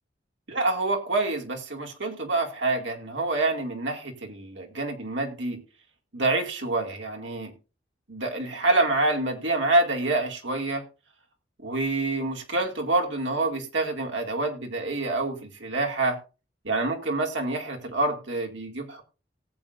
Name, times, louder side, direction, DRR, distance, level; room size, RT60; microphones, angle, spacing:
voice 1, 0.5-5.6 6.1-7.5 8.1-10.8 11.6-16.2 16.6-19.0, right 2 dB, 75° right, 2 dB, 2.5 m, -27 dB
18.0 x 8.1 x 2.6 m, 0.32 s
head